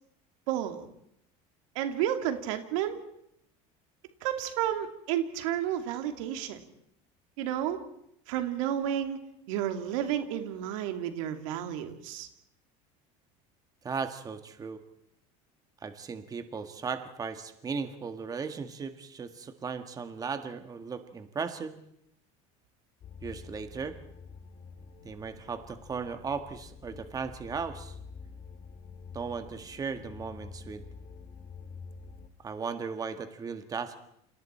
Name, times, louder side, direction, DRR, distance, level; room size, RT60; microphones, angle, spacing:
voice 1, 0.5-0.9 1.7-3.0 4.2-6.6 7.4-7.8 8.3-9.2 9.5-12.3, right 10 dB, 85° right, 7 dB, 2.5 m, -31 dB
voice 2, 13.8-14.8 15.8-21.8 23.2-24.0 25.0-28.0 29.1-30.8 32.4-34.0, right 5 dB, 20° right, 8 dB, 1.6 m, -36 dB
sound 1, 23.0-32.3, left 5 dB, 45° left, 2.6 m, -47 dB
29.5 x 27.5 x 4.4 m, 0.75 s
cardioid pair, 135°, 16 cm